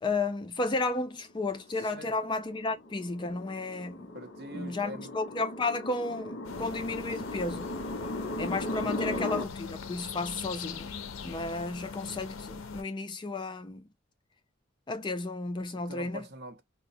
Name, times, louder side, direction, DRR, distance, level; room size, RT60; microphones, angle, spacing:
voice 1, 0.0-4.1 4.5-7.7 8.4-10.9 11.2-13.8 14.9-16.2, left 3 dB, 25° left, 0.3 m, -33 dB
sound 1, 1.4-9.5, left 1 dB, 60° left, 1.0 m, -38 dB
voice 2, 1.8-2.1 4.1-5.1 8.8-9.2 15.7-16.6, equal, 55° right, 0.7 m, -44 dB
sound 2, 6.4-12.8, left 5 dB, 80° left, 0.5 m, -41 dB
4.7 x 2.0 x 2.6 m
head